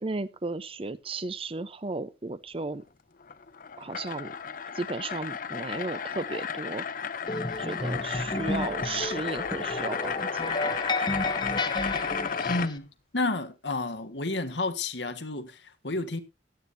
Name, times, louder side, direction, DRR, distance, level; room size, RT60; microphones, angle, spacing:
voice 1, 0.0-2.8 3.8-4.4 4.7-7.1 7.6-10.5, right 3 dB, 30° right, 0.7 m, -34 dB
sound 1, 3.2-12.7, left 6 dB, 45° left, 0.6 m, -33 dB
sound 2, 7.3-12.8, left 2 dB, 25° left, 1.1 m, -32 dB
voice 2, 12.5-12.9 13.1-16.2, left 2 dB, 70° left, 1.6 m, -31 dB
16.0 x 11.5 x 2.7 m
head